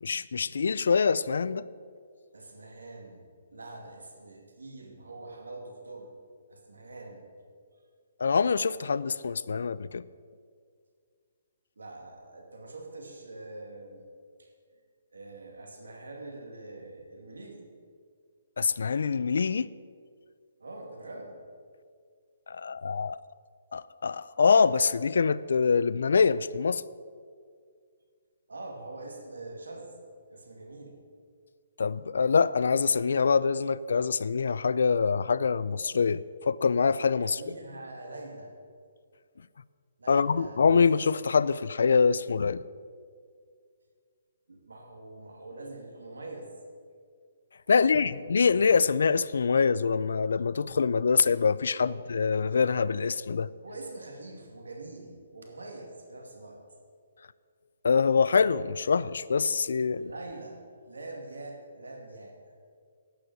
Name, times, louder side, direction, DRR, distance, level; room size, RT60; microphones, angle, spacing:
voice 1, 0.0-1.6 8.2-10.0 18.6-19.7 22.5-23.2 23.7-26.8 31.8-37.4 40.1-42.6 47.7-53.5 57.8-60.1, left 5 dB, 75° left, 19 dB, 0.4 m, -25 dB
voice 2, 2.3-3.2 3.5-6.1 6.5-7.3 11.8-14.0 14.4-14.5 15.1-17.6 20.6-21.4 28.5-29.9 30.3-31.0 37.2-38.5 40.0-40.6 44.5-46.5 47.6-48.2 48.5-48.8 51.8-52.0 53.6-56.6 59.9-60.6 60.9-62.5, right 2 dB, 90° right, 2 dB, 2.5 m, -44 dB
11.5 x 7.8 x 8.0 m, 2.1 s
hypercardioid pair, 145°, 0 cm